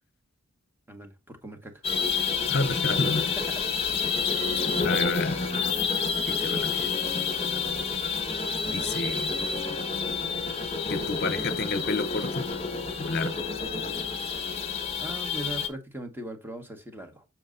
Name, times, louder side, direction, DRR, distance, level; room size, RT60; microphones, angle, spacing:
voice 1, 0.9-1.8 3.5-3.6 15.0-17.2, right 1 dB, 10° right, 1.2 m, -39 dB
sound 1, 1.8-15.7, left 5 dB, 25° left, 1.4 m, -29 dB
voice 2, 2.5-3.3 4.8-5.4 6.3-6.9 8.7-9.3 10.9-12.4 13.0-13.4, left 3 dB, 45° left, 0.9 m, -29 dB
7.0 x 6.2 x 3.8 m
head